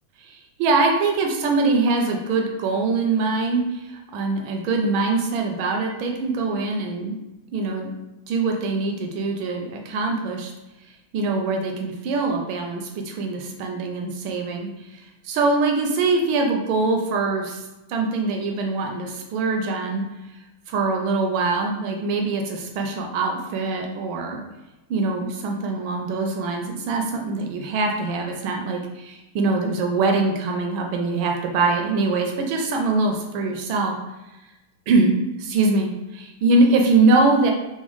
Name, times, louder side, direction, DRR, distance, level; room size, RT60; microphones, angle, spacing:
voice 1, 0.2-7.2 7.5-7.9 8.3-10.5 11.1-17.6 17.9-20.0 20.7-24.4 24.9-34.0 34.9-35.2 35.4-37.5, right 3 dB, 80° right, 2 dB, 1.3 m, -23 dB
4.1 x 2.0 x 3.1 m, 1.0 s
omnidirectional pair, 2.3 m